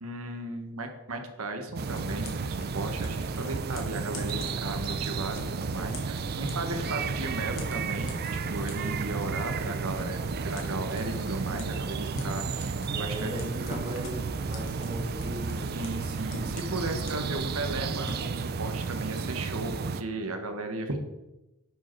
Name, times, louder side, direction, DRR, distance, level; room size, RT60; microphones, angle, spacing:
voice 1, 0.0-10.2 10.4-13.6 15.7-21.0, right 2 dB, 70° right, 5 dB, 1.2 m, -35 dB
sound 1, 1.8-20.0, right 5 dB, 45° right, 0.4 m, -33 dB
sound 2, 1.9-18.5, left 1 dB, 65° left, 1.8 m, -42 dB
voice 2, 6.7-7.1 12.9-15.7, right 1 dB, 20° right, -1 dB, 1.9 m, -39 dB
10.5 x 4.9 x 4.5 m, 1.0 s
head